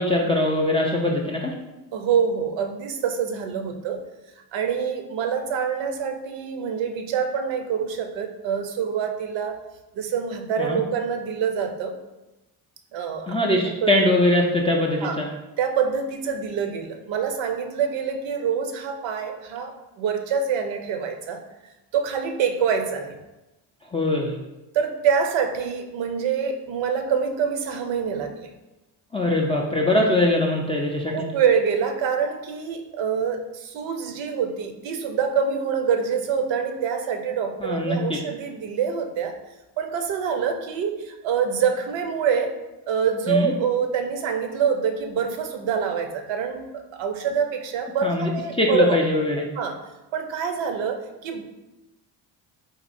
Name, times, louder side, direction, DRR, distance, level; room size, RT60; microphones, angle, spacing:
voice 1, 0.0-1.5 10.6-10.8 13.3-15.3 23.9-24.4 29.1-31.3 37.6-38.2 43.3-43.5 48.0-48.3 48.6-49.4, left 1 dB, 15° left, -2 dB, 0.3 m, -22 dB
voice 2, 1.9-4.0 4.5-9.6 10.0-11.9 12.9-14.0 15.0-15.2 15.6-21.4 21.9-23.2 24.7-28.5 31.1-39.4 39.8-42.6 42.9-49.0 49.6-49.8 50.1-51.4, right 6 dB, 65° right, 5 dB, 0.7 m, -26 dB
4.0 x 2.7 x 2.6 m, 1.0 s
supercardioid pair, 75°, 50 cm